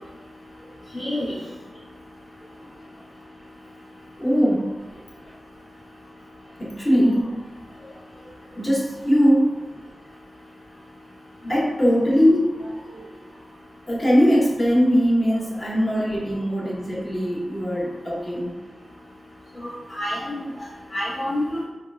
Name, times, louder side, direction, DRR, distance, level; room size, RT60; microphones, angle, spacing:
voice 1, 0.9-1.3 11.4-11.6 19.6-20.5 20.9-21.6, left 1 dB, 55° left, -12 dB, 1.0 m, -28 dB
voice 2, 4.2-5.3 6.6-7.3 7.8-9.6 11.5-13.2 13.9-18.5, equal, 30° left, -4 dB, 0.9 m, -21 dB
3.5 x 2.3 x 2.3 m, 1.1 s
cardioid pair, 60°, 0 cm